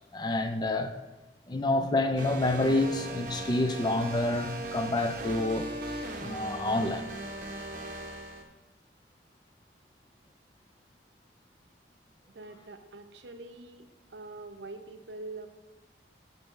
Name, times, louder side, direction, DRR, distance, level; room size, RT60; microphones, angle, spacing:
voice 1, 0.1-0.9 1.5-5.7 6.2-7.1, left 2 dB, 25° left, 0.4 m, -28 dB
sound 1, 2.2-8.4, right 2 dB, 50° right, 0.8 m, -38 dB
voice 2, 12.3-15.5, right 2 dB, 75° right, 0.7 m, -44 dB
8.4 x 3.4 x 6.4 m
head